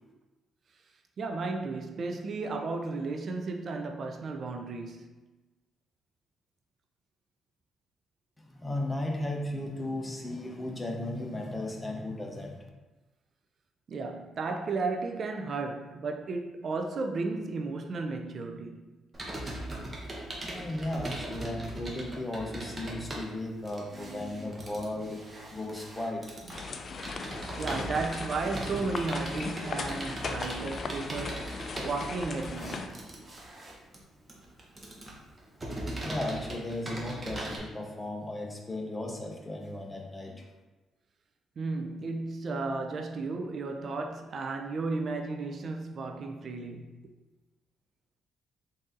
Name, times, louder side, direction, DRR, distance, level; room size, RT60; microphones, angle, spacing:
voice 1, 1.2-5.1 13.9-18.9 27.6-31.6 31.8-33.0 41.6-47.0, right 3 dB, 50° right, 0.4 m, -34 dB
voice 2, 8.4-12.6 20.4-25.2 25.5-26.4 36.0-40.4, left 1 dB, 15° left, 0.7 m, -35 dB
Computer keyboard, 19.1-37.6, right 1 dB, 25° right, 0.9 m, -40 dB
sound 1, 26.5-32.9, left 4 dB, 50° left, 0.4 m, -38 dB
3.8 x 2.7 x 3.7 m
cardioid pair, 90°, 0 cm